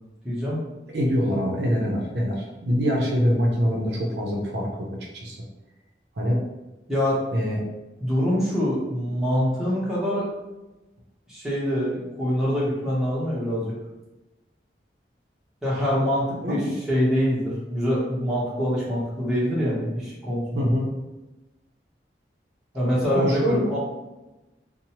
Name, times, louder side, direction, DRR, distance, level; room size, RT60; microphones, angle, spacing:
voice 1, 0.2-0.6 6.9-7.3 8.0-10.3 11.3-13.7 15.6-20.7 22.7-23.8, equal, 5° right, -8 dB, 0.8 m, -25 dB
voice 2, 0.9-4.9 5.1-5.4 6.2-6.4 7.3-7.6 16.4-16.7 20.6-20.9 23.1-23.7, equal, 70° right, -1 dB, 0.5 m, -24 dB
2.9 x 2.0 x 2.8 m, 1.0 s
head